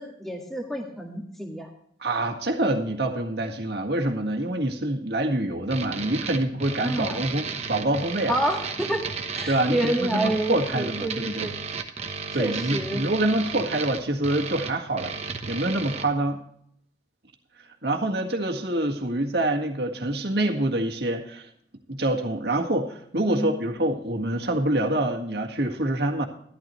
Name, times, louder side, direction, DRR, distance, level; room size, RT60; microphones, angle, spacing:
voice 1, 0.0-1.7 6.8-7.2 8.3-9.0 9.3-11.5 12.4-13.0 23.3-23.6, right 1 dB, ahead, 1 dB, 1.9 m, -28 dB
voice 2, 2.0-8.3 9.5-11.5 12.3-15.2 15.5-16.4 17.8-21.5 21.9-26.3, right 1 dB, 60° right, 2 dB, 1.8 m, -26 dB
sound 1, 5.7-16.1, right 5 dB, 35° right, 1.0 m, -34 dB
13.0 x 12.0 x 3.1 m, 0.66 s
head